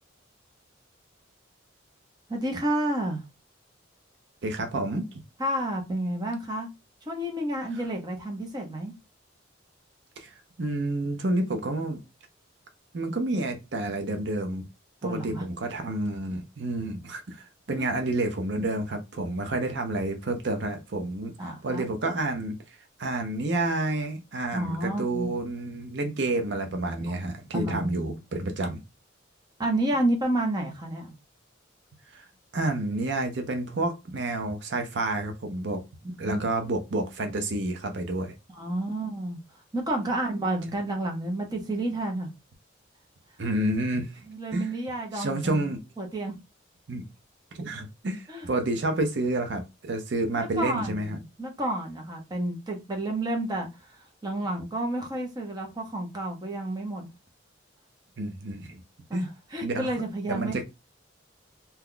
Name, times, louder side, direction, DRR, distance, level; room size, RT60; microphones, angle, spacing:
voice 1, 2.3-3.2 5.4-6.7 7.1-8.9 15.0-15.4 17.8-17.9 21.4-21.9 24.5-25.3 27.0-28.2 29.6-31.1 36.2-36.4 38.5-39.4 39.7-42.3 44.3-45.6 46.0-46.3 48.3-48.5 50.4-57.1 59.1-60.6, right 1 dB, 20° right, 0.7 m, -30 dB
voice 2, 4.4-5.1 10.2-12.0 12.9-14.6 15.0-22.6 23.0-28.8 32.1-32.2 32.5-35.8 36.2-38.3 43.4-44.2 44.5-44.7 45.1-45.8 46.9-47.0 47.5-51.2 58.2-58.8 59.1-59.3 59.6-59.9 60.3-60.6, right 2 dB, 60° right, 0.6 m, -29 dB
2.8 x 2.2 x 3.7 m
head